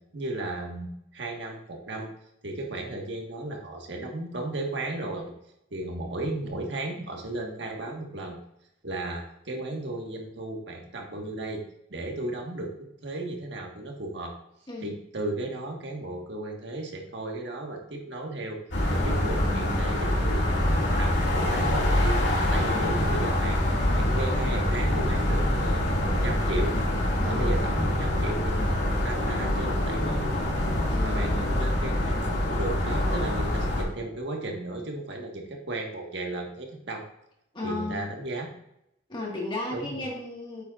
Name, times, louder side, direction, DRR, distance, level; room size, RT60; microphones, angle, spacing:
voice 1, 0.1-2.1 2.4-5.3 5.7-8.4 8.8-11.6 11.9-14.4 14.8-18.6 18.9-23.6 23.9-26.7 27.2-30.2 31.0-37.1 37.6-38.5 39.7-40.0, right 2 dB, 75° right, 1 dB, 1.6 m, -35 dB
voice 2, 14.7-15.0 22.6-22.9 27.2-27.6 30.9-31.6 37.5-38.1 39.1-40.6, left 2 dB, 30° left, -2 dB, 1.8 m, -35 dB
sound 1, 18.7-33.8, left 1 dB, 80° left, 2.3 m, -25 dB
8.8 x 7.6 x 2.5 m, 0.77 s
head